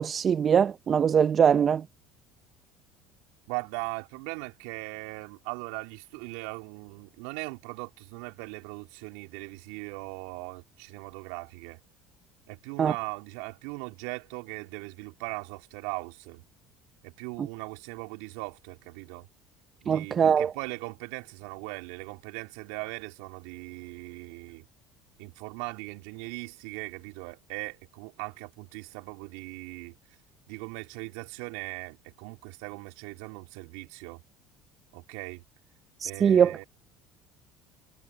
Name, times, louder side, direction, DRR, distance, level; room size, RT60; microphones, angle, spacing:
voice 1, 0.0-1.8 12.8-12.9 19.9-20.5 36.0-36.6, right 7 dB, 40° right, 1.1 m, -22 dB
voice 2, 3.5-11.8 12.5-16.4 17.0-19.3 19.8-24.6 25.2-29.9 30.5-34.2 34.9-35.4 36.0-36.6, right 30 dB, 70° right, 3.7 m, -39 dB
hypercardioid pair, 70°, 0 cm